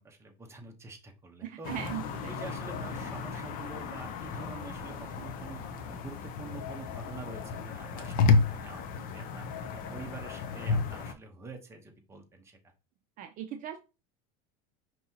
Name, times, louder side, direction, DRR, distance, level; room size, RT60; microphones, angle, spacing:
voice 1, 0.0-1.7 2.3-5.6 5.9-8.9 9.1-12.6, right 4 dB, 15° right, 2 dB, 1.0 m, -46 dB
voice 2, 1.4-2.3 13.2-13.8, right 10 dB, 45° right, 6 dB, 0.6 m, -39 dB
sound 1, 1.6-11.1, left 4 dB, 45° left, 0.7 m, -32 dB
5.3 x 2.9 x 2.8 m, 0.30 s
supercardioid pair, 135°, 20 cm